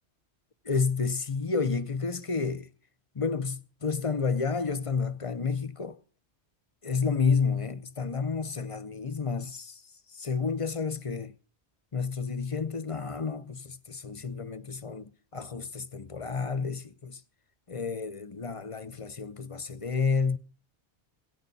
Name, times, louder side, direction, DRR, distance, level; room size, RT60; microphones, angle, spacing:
voice 1, 0.6-2.7 3.1-6.0 6.8-9.8 10.1-11.3 11.9-17.2 17.7-20.4, left 5 dB, 35° left, 0.7 m, -30 dB
17.5 x 14.5 x 4.1 m
omnidirectional pair, 1.1 m